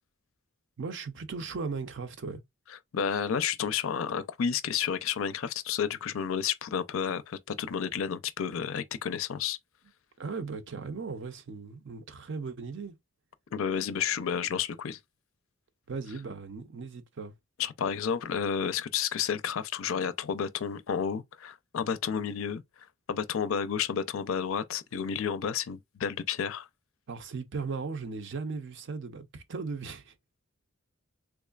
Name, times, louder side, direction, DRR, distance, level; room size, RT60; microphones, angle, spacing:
voice 1, 0.8-2.4 10.2-12.9 15.9-17.3 27.1-30.1, right 4 dB, 55° right, 0.5 m, -37 dB
voice 2, 2.9-9.6 13.5-15.0 17.6-22.6 23.1-26.7, left 7 dB, 70° left, 0.4 m, -31 dB
3.5 x 3.2 x 2.3 m
head